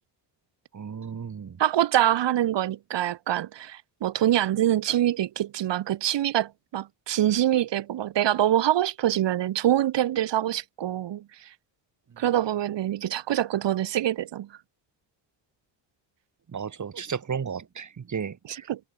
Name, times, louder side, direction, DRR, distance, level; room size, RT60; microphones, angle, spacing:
voice 1, 0.7-1.6 16.5-18.7, right 7 dB, 40° right, 3.5 m, -34 dB
voice 2, 1.6-11.2 12.2-14.5 18.5-18.8, right 12 dB, 70° right, 2.0 m, -25 dB
cardioid pair, 115°, 45 cm